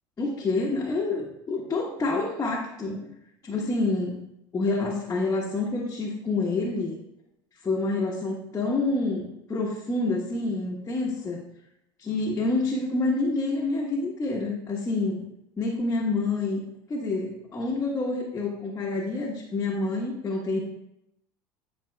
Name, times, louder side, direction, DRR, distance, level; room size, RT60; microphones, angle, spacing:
voice 1, 0.2-3.1 3.4-4.2 4.5-7.0 7.6-11.4 12.0-15.2 15.6-16.6 16.9-20.6, left 3 dB, 25° left, -3 dB, 1.2 m, -27 dB
11.0 x 4.3 x 2.3 m, 0.81 s
hypercardioid pair, 85°, 12 cm